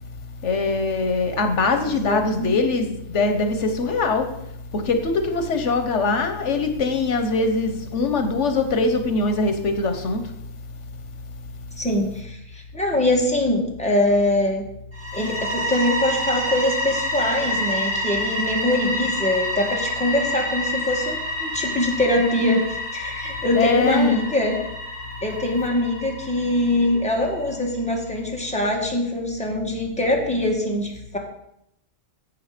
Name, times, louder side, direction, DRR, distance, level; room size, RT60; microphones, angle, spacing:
voice 1, 0.4-4.3 4.7-10.2 23.5-24.2, left 3 dB, 80° left, 7 dB, 1.4 m, -22 dB
voice 2, 2.0-2.6 11.8-14.6 15.1-22.6 22.9-24.6 25.2-31.2, left 1 dB, 5° left, -1 dB, 2.0 m, -23 dB
sound 1, 14.9-27.6, left 1 dB, 55° right, 3.7 m, -28 dB
12.5 x 8.0 x 5.1 m, 0.78 s
omnidirectional pair, 1.2 m